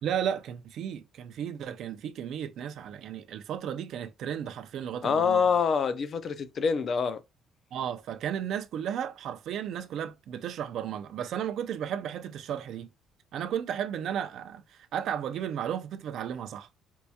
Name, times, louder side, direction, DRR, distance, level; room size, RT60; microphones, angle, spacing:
voice 1, 0.0-5.4 7.7-12.9 13.3-16.7, right 9 dB, 60° right, 0.4 m, -34 dB
voice 2, 5.0-7.2, left 6 dB, 40° left, 0.3 m, -26 dB
4.4 x 2.3 x 2.7 m
cardioid pair, 160°, 0 cm